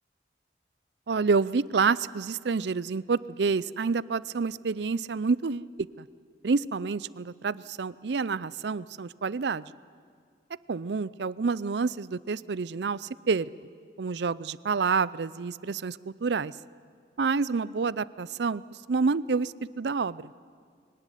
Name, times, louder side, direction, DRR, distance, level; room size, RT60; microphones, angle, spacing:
voice 1, 1.1-5.7 6.0-6.1 6.4-9.7 10.7-13.5 14.0-16.5 17.2-18.6 18.9-20.3, right 4 dB, 75° right, 19 dB, 0.5 m, -28 dB
22.5 x 18.5 x 9.9 m, 2.1 s
head